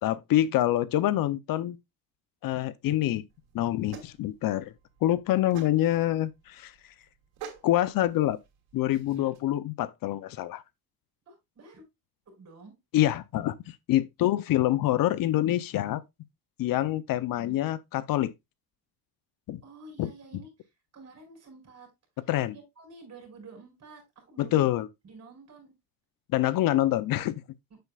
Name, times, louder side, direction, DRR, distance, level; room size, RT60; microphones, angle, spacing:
voice 1, 0.0-1.8 2.4-3.2 3.5-4.7 5.0-6.7 7.6-8.4 8.7-10.6 12.9-16.0 16.6-18.3 19.5-19.6 20.0-20.1 22.3-22.6 24.4-24.9 26.3-27.4, left 14 dB, 60° left, 0.7 m, -26 dB
sound 1, 3.3-9.4, right 8 dB, 80° right, 2.7 m, -49 dB
voice 2, 11.3-11.8 12.3-12.7 17.3-17.6 19.6-20.5 20.9-21.9 22.5-24.7 25.0-25.7 27.7-27.8, right 3 dB, 40° right, 5.1 m, -49 dB
7.9 x 6.7 x 2.4 m
cardioid pair, 125°, 37 cm